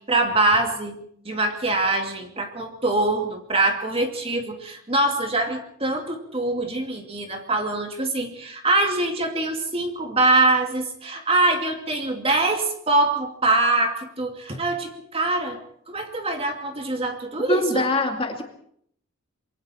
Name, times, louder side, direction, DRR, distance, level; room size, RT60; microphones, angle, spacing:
voice 1, 0.0-15.6 15.9-17.8, right 2 dB, 30° right, 3 dB, 2.5 m, -24 dB
voice 2, 17.5-18.4, left 2 dB, 25° left, 3 dB, 2.5 m, -23 dB
26.0 x 23.5 x 4.5 m, 0.66 s
head